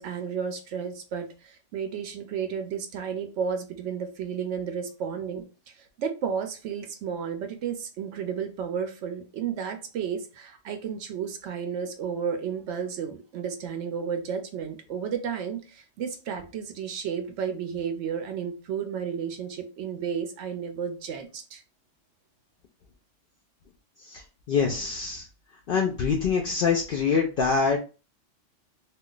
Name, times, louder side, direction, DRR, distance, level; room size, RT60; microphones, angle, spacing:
voice 1, 0.0-21.6, right 7 dB, 70° right, 0.8 m, -32 dB
voice 2, 24.0-25.3 25.7-27.8, left 5 dB, 60° left, 0.6 m, -25 dB
2.4 x 2.3 x 3.7 m
omnidirectional pair, 1.3 m